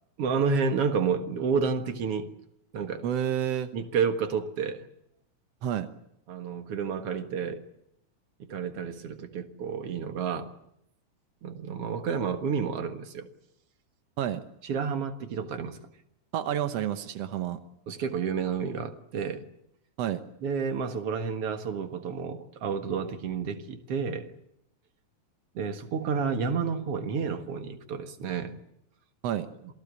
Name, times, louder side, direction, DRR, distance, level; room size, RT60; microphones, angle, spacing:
voice 1, 0.2-2.3 2.7-3.0 3.7-4.9 6.3-7.6 8.4-10.5 11.4-13.3 14.6-15.8 17.9-19.4 20.4-24.3 25.5-28.6, right 6 dB, 50° right, 7 dB, 2.0 m, -30 dB
voice 2, 3.0-3.7 5.6-5.9 14.2-14.4 16.3-17.6 20.0-20.2 29.2-29.5, right 10 dB, 80° right, 9 dB, 1.4 m, -29 dB
27.5 x 18.5 x 8.3 m, 0.80 s
omnidirectional pair, 4.3 m